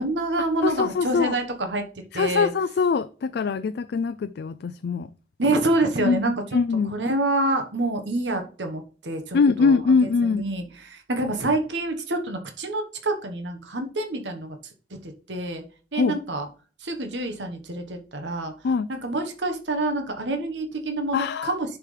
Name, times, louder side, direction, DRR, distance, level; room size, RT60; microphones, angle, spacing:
voice 1, 0.0-1.8 2.1-2.5 5.4-6.3 6.9-9.8 10.2-14.6 15.0-15.6 15.9-16.5 16.8-18.5 18.9-21.8, right 2 dB, 85° right, 1.3 m, -27 dB
voice 2, 0.6-1.4 2.1-5.1 6.0-7.0 9.3-10.4 15.9-16.2 18.6-18.9 21.1-21.5, left 5 dB, 65° left, 0.3 m, -23 dB
10.5 x 6.0 x 3.3 m
head